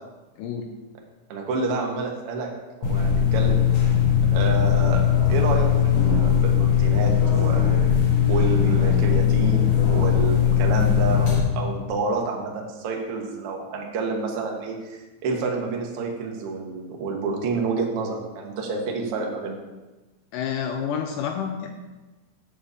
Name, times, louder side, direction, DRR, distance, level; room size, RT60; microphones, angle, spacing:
voice 1, 0.4-0.7 20.3-21.7, left 7 dB, 85° left, 4 dB, 1.9 m, -29 dB
voice 2, 1.3-2.5 2.8-3.6 4.3-7.8 8.3-19.6, right 4 dB, 70° right, 0 dB, 1.4 m, -29 dB
sound 1, 2.8-11.4, left 8 dB, 55° left, 2.6 m, -19 dB
7.9 x 5.0 x 6.7 m, 1.2 s
omnidirectional pair, 4.3 m